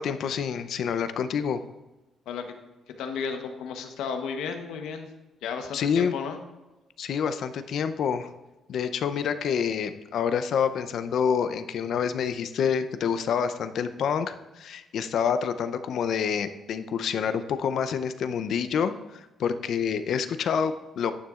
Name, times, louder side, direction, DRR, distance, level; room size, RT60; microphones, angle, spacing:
voice 1, 0.0-1.6 5.7-6.1 7.0-8.3 8.7-21.1, left 7 dB, 70° left, 11 dB, 0.6 m, -27 dB
voice 2, 2.9-5.1 5.4-6.4, left 6 dB, 90° left, 6 dB, 1.0 m, -33 dB
11.0 x 9.3 x 2.5 m, 1.1 s
cardioid pair, 90°, 0 cm